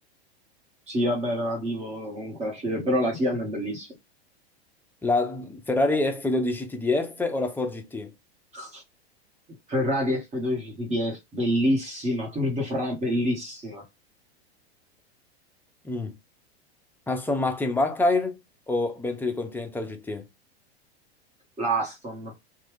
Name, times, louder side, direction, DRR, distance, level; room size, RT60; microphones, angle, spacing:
voice 1, 0.9-3.9 8.5-8.8 9.7-13.8 21.6-22.3, equal, 20° right, 1.2 m, -27 dB
voice 2, 5.0-8.1 15.8-16.1 17.1-18.4 18.7-20.2, left 2 dB, 5° left, 0.4 m, -26 dB
2.9 x 2.3 x 3.2 m
hypercardioid pair, 110°, 32 cm